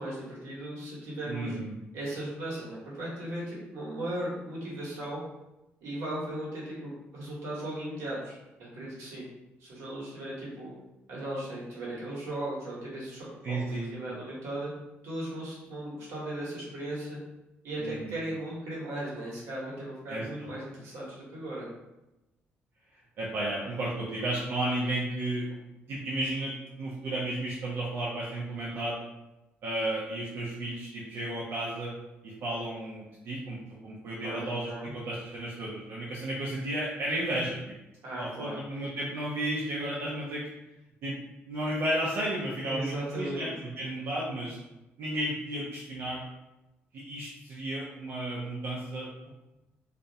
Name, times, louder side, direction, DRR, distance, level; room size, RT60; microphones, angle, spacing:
voice 1, 0.0-1.5 1.9-5.2 5.8-9.3 9.6-10.7 11.1-14.7 15.0-17.2 17.6-21.7 34.2-34.9 38.0-38.6 42.7-43.5, right 1 dB, 85° right, -6 dB, 1.0 m, -37 dB
voice 2, 1.3-1.7 13.4-13.9 17.8-18.2 20.1-20.5 23.2-25.5 25.9-29.0 29.6-31.9 32.2-37.6 38.1-40.5 41.0-41.2 41.5-43.5 43.8-44.6 45.0-46.2 46.9-49.3, right 1 dB, 60° right, -6 dB, 0.5 m, -33 dB
2.4 x 2.0 x 2.6 m, 0.98 s
cardioid pair, 170°, 5 cm